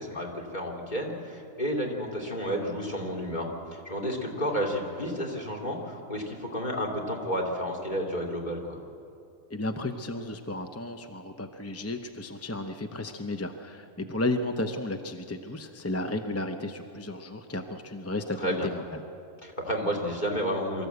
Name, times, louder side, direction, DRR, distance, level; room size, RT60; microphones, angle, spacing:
voice 1, 0.0-8.8 18.3-18.7 19.4-20.9, equal, 35° left, -1 dB, 2.8 m, -31 dB
voice 2, 9.5-18.8, left 2 dB, 15° left, 6 dB, 0.6 m, -33 dB
24.0 x 14.0 x 8.1 m, 2.5 s
omnidirectional pair, 1.4 m